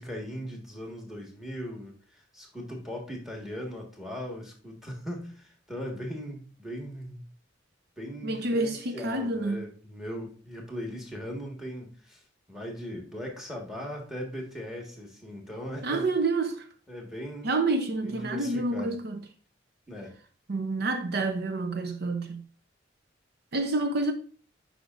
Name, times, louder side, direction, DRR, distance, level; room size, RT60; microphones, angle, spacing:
voice 1, 0.0-7.2 8.0-12.2 12.5-16.1 16.9-17.5 18.0-18.9 19.9-20.1, equal, ahead, 1.6 m, -39 dB
voice 2, 8.2-9.6 15.8-16.7 17.4-19.2 20.5-22.4 23.5-24.1, right 2 dB, 55° right, 0.6 m, -28 dB
10.0 x 5.1 x 2.5 m
head